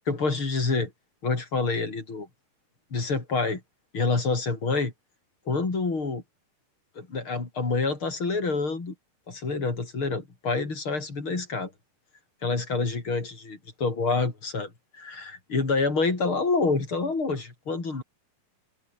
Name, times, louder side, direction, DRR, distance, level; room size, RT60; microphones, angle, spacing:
voice 1, 0.1-0.9 1.2-2.3 2.9-3.6 3.9-4.9 5.5-6.2 7.0-8.9 9.3-11.7 12.4-18.0, left 3 dB, 35° left, 5.6 m, -27 dB
omnidirectional pair, 4.1 m